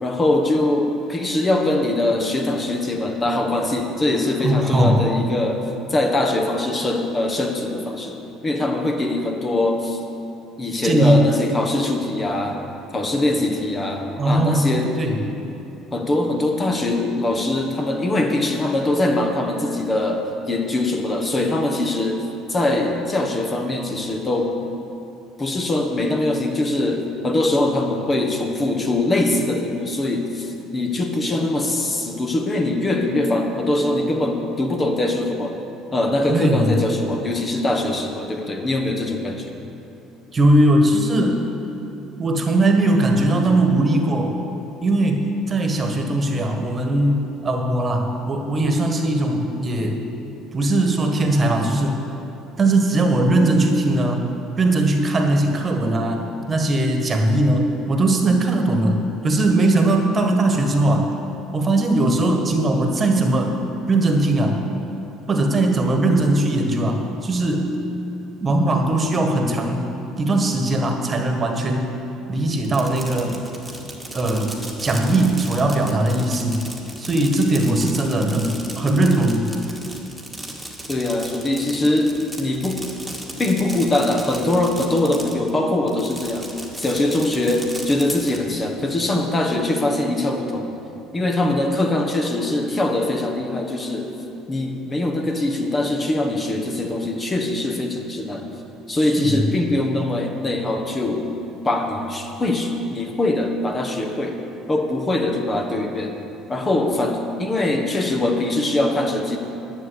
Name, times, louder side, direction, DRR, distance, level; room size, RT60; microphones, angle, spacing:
voice 1, 0.0-10.0 10.6-12.6 12.9-14.9 15.9-24.5 25.4-35.6 35.9-39.6 80.9-82.8 83.4-90.7 91.1-94.1 94.5-98.5 98.9-101.3 101.6-104.4 104.7-106.2 106.5-109.4, left 2 dB, 30° left, 3 dB, 1.4 m, -22 dB
voice 2, 4.4-5.0 10.8-11.3 14.2-15.2 36.3-36.7 40.3-41.4 42.2-44.3 44.8-50.0 50.5-52.0 52.6-54.3 54.6-61.1 61.5-63.6 63.9-64.6 65.3-67.7 68.4-69.8 70.2-71.9 72.3-73.4 74.1-74.5 74.8-76.6 77.0-79.5 99.0-99.4, right 1 dB, 30° right, 4 dB, 1.6 m, -19 dB
Fireworks, 72.6-85.5 85.9-88.4, right 1 dB, 5° right, 2.0 m, -36 dB
11.0 x 6.9 x 8.1 m, 2.9 s
supercardioid pair, 75°, 0 cm